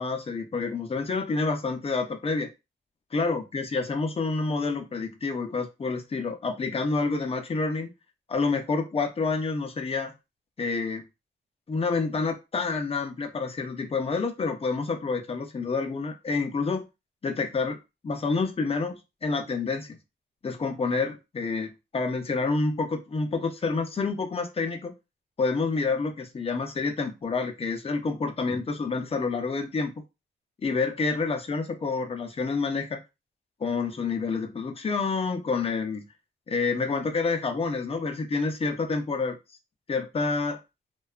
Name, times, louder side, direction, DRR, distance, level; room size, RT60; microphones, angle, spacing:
voice 1, 0.0-2.5 3.1-7.9 8.3-10.1 10.6-11.0 11.7-16.9 17.2-17.8 18.0-20.0 20.4-24.9 25.4-29.9 30.6-33.0 33.6-36.0 36.5-39.4 39.9-40.6, left 4 dB, 30° left, 6 dB, 0.5 m, -28 dB
2.7 x 2.2 x 2.3 m, 0.26 s
wide cardioid pair, 105°, 20 cm